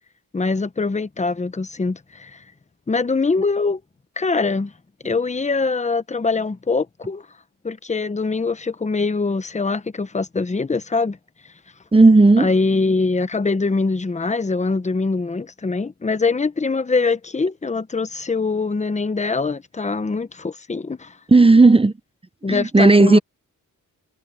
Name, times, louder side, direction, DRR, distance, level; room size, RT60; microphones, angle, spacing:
voice 1, 0.3-2.4 2.9-3.8 4.2-4.7 5.0-7.3 7.6-11.2 12.4-21.1 22.4-23.2, left 4 dB, 20° left, 0.9 m, -23 dB
voice 2, 11.9-12.5 21.3-21.9 22.5-23.2, right 3 dB, 15° right, 0.7 m, -12 dB
wide cardioid pair, 105°, 33 cm